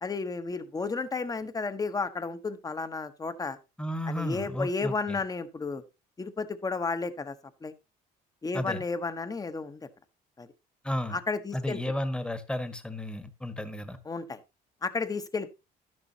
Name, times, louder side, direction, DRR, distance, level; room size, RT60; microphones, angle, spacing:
voice 1, 0.0-3.6 4.1-5.8 6.2-7.3 7.6-7.7 8.4-9.9 10.4-10.5 11.1-11.8 14.0-14.4 14.8-15.5, left 4 dB, 20° left, 11 dB, 1.1 m, -32 dB
voice 2, 3.8-5.2 8.5-8.8 10.8-11.2 11.5-14.0, left 1 dB, 5° left, 11 dB, 1.3 m, -33 dB
11.5 x 10.5 x 2.9 m, 0.26 s
cardioid pair, 110°, 17 cm